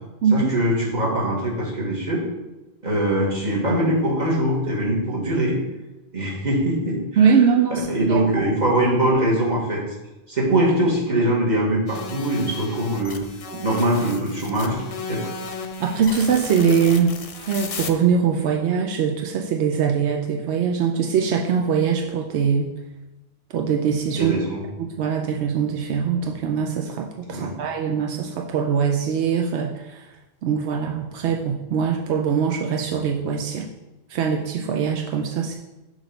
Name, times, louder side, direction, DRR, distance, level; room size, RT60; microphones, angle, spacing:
voice 1, 0.3-2.2 2.8-5.6 6.1-7.4 7.7-9.8 10.3-13.2 13.6-14.8 15.1-15.3 24.1-24.7 27.3-27.6, right 1 dB, 45° right, -4 dB, 1.5 m, -22 dB
voice 2, 7.2-8.2 13.5-13.7 15.8-17.1 17.5-22.7 23.5-24.3 24.8-30.0 30.4-33.7 34.1-35.6, right 6 dB, 85° right, 1 dB, 0.9 m, -22 dB
sound 1, 11.9-17.9, left 4 dB, 50° left, 0.4 m, -35 dB
6.3 x 3.2 x 5.2 m, 1.0 s
omnidirectional pair, 1.1 m